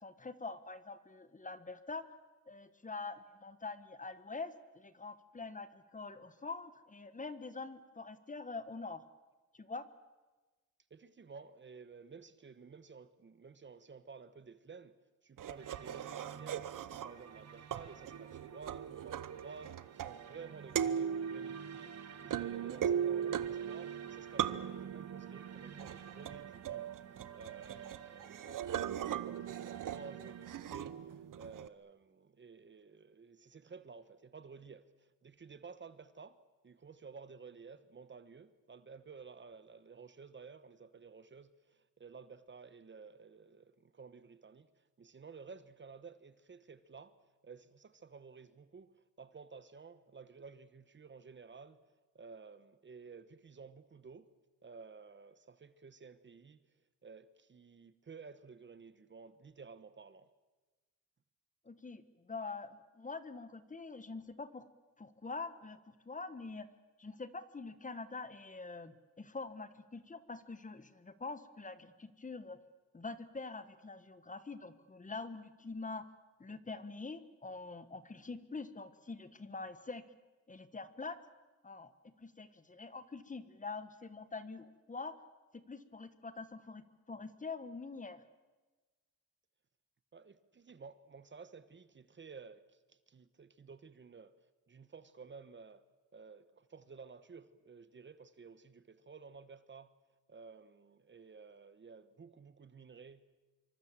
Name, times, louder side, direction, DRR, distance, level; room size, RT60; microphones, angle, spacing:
voice 1, 0.0-2.1 2.5-9.0 9.5-9.9 61.6-64.6 65.0-66.7 67.0-72.6 72.9-76.0 76.4-80.0 80.5-81.2 81.6-81.9 82.2-85.2 85.7-86.8 87.1-88.2, left 3 dB, 25° left, 1.5 m, -45 dB
voice 2, 10.9-15.0 15.2-16.7 17.0-36.4 36.6-47.2 47.4-48.9 49.2-51.8 52.1-54.3 54.6-56.6 57.0-60.3 90.1-94.3 94.7-95.8 96.1-99.9 100.3-103.4, right 5 dB, 35° right, 1.1 m, -53 dB
sound 1, 15.4-17.3 17.7-20.5 20.7-31.7, right 9 dB, 70° right, 1.1 m, -39 dB
sound 2, 15.6-30.6, right 7 dB, 50° right, 1.7 m, -54 dB
26.0 x 24.5 x 7.5 m
wide cardioid pair, 135°, 33 cm